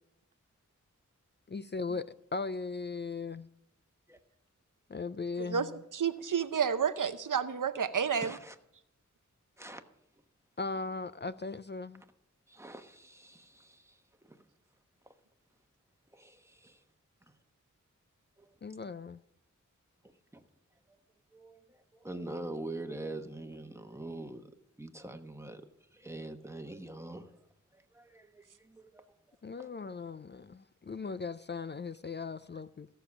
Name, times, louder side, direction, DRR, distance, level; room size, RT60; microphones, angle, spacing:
voice 1, 1.5-3.5 4.9-5.8 10.6-12.0 18.6-19.2 29.4-32.9, left 4 dB, 35° left, 0.4 m, -38 dB
voice 2, 5.9-8.3, right 7 dB, 80° right, 0.7 m, -30 dB
voice 3, 8.1-8.6 9.6-9.8 12.5-14.4 15.0-15.1 16.1-16.7 18.4-18.5 20.3-20.4 20.9-21.0 21.3-24.5 24.8-25.6 25.9-29.1 29.6-29.7, right 2 dB, 10° right, 1.1 m, -44 dB
15.0 x 6.9 x 5.9 m
wide cardioid pair, 55°, 31 cm